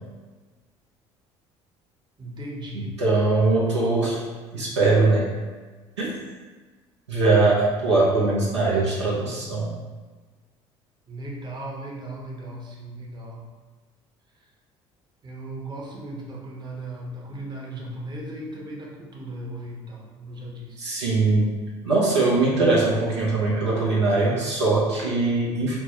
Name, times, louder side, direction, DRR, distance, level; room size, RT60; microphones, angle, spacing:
voice 1, 2.2-3.0 11.1-13.4 15.2-21.0, right 1 dB, 30° right, -2 dB, 0.8 m, -37 dB
voice 2, 2.7-4.2 4.5-5.3 6.0-6.1 7.1-9.7 20.8-21.5 21.8-25.8, right 3 dB, 90° right, -6 dB, 0.7 m, -21 dB
4.4 x 2.1 x 3.0 m, 1.3 s
hypercardioid pair, 60°, 14 cm